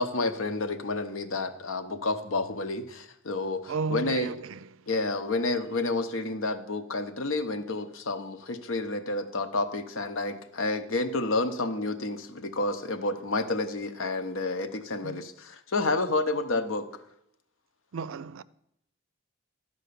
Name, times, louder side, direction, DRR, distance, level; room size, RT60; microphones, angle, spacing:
voice 1, 0.0-4.3 4.9-16.9, left 2 dB, 75° left, 0.9 m, -30 dB
voice 2, 3.7-4.9 15.0-15.2 17.9-18.4, right 4 dB, 75° right, 0.4 m, -34 dB
12.5 x 5.3 x 6.8 m
head